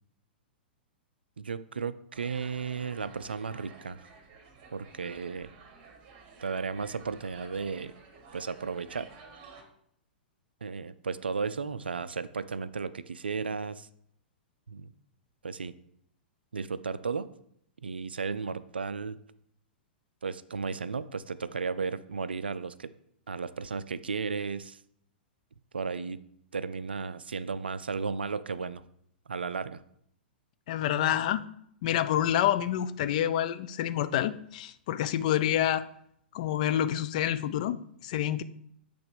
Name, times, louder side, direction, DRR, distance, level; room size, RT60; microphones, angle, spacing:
voice 1, 1.4-4.1 4.7-5.5 6.4-7.9 8.3-9.1 10.6-13.9 14.7-14.9 15.4-15.7 16.5-17.3 17.8-19.2 20.2-22.9 23.3-24.8 25.7-26.2 26.5-28.8 29.3-29.8, right 5 dB, 70° right, 14 dB, 0.3 m, -34 dB
sound 1, 2.1-9.6, right 4 dB, 35° right, 1.2 m, -52 dB
voice 2, 30.7-31.5 31.8-35.9 36.3-38.4, left 11 dB, 45° left, 13 dB, 0.4 m, -28 dB
8.0 x 3.4 x 5.0 m, 0.70 s
figure-of-eight pair, 105°, 6 cm